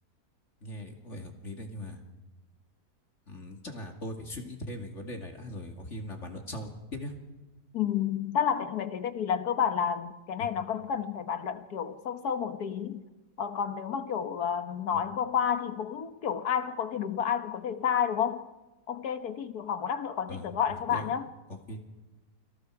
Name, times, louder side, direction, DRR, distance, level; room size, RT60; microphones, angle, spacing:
voice 1, 0.6-2.0 3.3-7.2 10.4-10.5 14.9-15.0 20.3-21.1 21.5-21.8, left 1 dB, 45° left, 2.8 m, -40 dB
voice 2, 7.7-13.1 13.4-18.5 18.9-21.3, left 8 dB, 70° left, 1.8 m, -30 dB
30.0 x 25.5 x 4.8 m
omnidirectional pair, 1.7 m